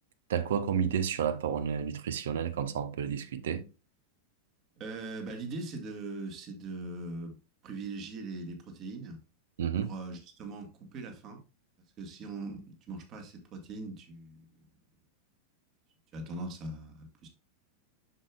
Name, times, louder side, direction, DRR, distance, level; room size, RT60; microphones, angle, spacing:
voice 1, 0.3-3.6 9.6-9.9, right 8 dB, 60° right, 0.8 m, -31 dB
voice 2, 4.8-7.4 7.6-9.2 9.7-11.4 12.0-14.5 16.1-17.3, right 2 dB, 35° right, 1.8 m, -41 dB
7.4 x 6.7 x 2.4 m
figure-of-eight pair, 90°, 0 cm